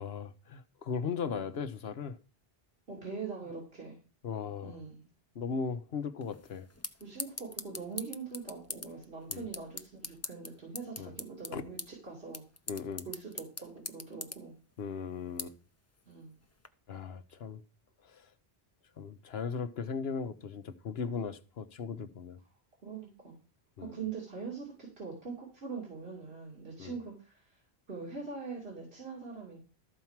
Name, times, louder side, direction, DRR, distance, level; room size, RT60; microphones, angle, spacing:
voice 1, 0.0-2.2 4.2-4.8 5.3-6.7 9.3-9.4 11.0-11.1 11.5-11.6 12.7-13.1 14.8-15.6 16.9-17.6 18.0-18.3 19.0-22.4 23.8-24.0 26.8-26.9, left 5 dB, 80° left, 1.1 m, -37 dB
voice 2, 2.9-4.0 4.6-5.1 7.0-12.4 13.0-14.6 16.1-16.3 22.8-23.3 23.8-27.6 27.9-29.6, right 5 dB, 75° right, 3.0 m, -43 dB
sound 1, 6.2-16.7, left 2 dB, 15° left, 0.6 m, -45 dB
13.5 x 4.6 x 7.3 m
omnidirectional pair, 1.0 m